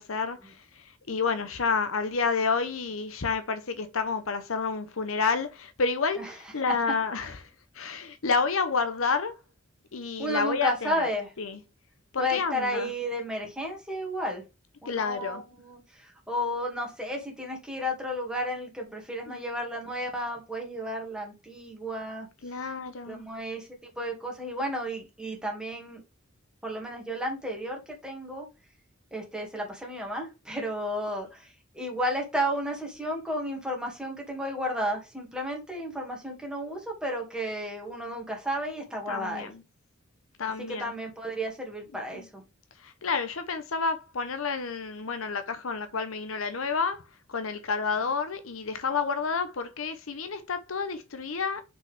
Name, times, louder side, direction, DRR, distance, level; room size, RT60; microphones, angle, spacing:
voice 1, 0.0-7.5 7.7-9.3 9.9-11.1 11.4-11.6 12.1-12.9 14.9-15.4 19.3-19.4 22.4-23.3 39.1-39.6 40.4-40.9 42.1-42.3 42.8-47.0 47.3-51.6, left 5 dB, 70° left, 0.8 m, -30 dB
voice 2, 10.2-11.3 12.2-14.4 14.8-22.3 23.1-23.7 24.0-26.0 26.6-28.5 29.1-39.5 40.7-42.4, equal, 5° right, 2.3 m, -32 dB
6.1 x 5.3 x 3.5 m
head